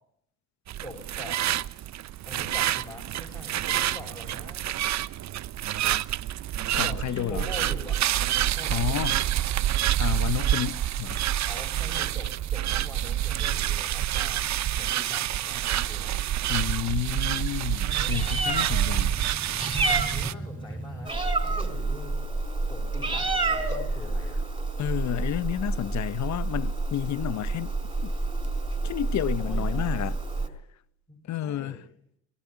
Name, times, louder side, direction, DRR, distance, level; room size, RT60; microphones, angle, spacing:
sound 1, 0.7-20.3, right 12 dB, 45° right, 0.9 m, -27 dB
voice 1, 0.8-1.4 2.3-4.7 6.8-8.0 8.5-9.1 11.5-14.5 14.8-16.2 19.8-22.3 22.7-24.4 29.3-30.0 30.3-30.4 31.1-31.9, left 1 dB, 10° left, 7.0 m, -43 dB
voice 2, 6.8-7.5 8.7-9.2 10.0-11.3 16.5-19.2 19.7-19.8 24.8-27.7 28.0-28.1 28.8-30.1 31.3-31.8, left 12 dB, 45° left, 1.0 m, -31 dB
Meow, 17.9-30.5, right 2 dB, 10° right, 4.6 m, -29 dB
24.0 x 19.5 x 9.8 m
supercardioid pair, 85°, 38 cm